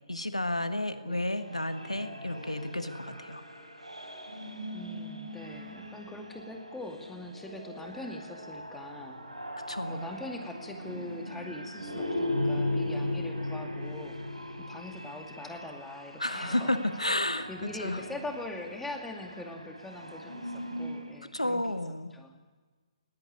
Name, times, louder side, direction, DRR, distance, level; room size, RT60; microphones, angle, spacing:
voice 1, 0.1-3.4 9.7-10.1 16.2-17.5 17.8-18.0 21.3-22.2, left 1 dB, 85° left, 10 dB, 1.5 m, -31 dB
sound 1, 1.4-21.2, left 1 dB, 85° right, 3.8 m, -38 dB
voice 2, 4.7-9.5 9.8-16.8 17.5-21.8 22.1-22.3, left 2 dB, 5° left, 4 dB, 2.2 m, -42 dB
19.5 x 17.0 x 10.0 m, 1.3 s
figure-of-eight pair, 130°, 3 cm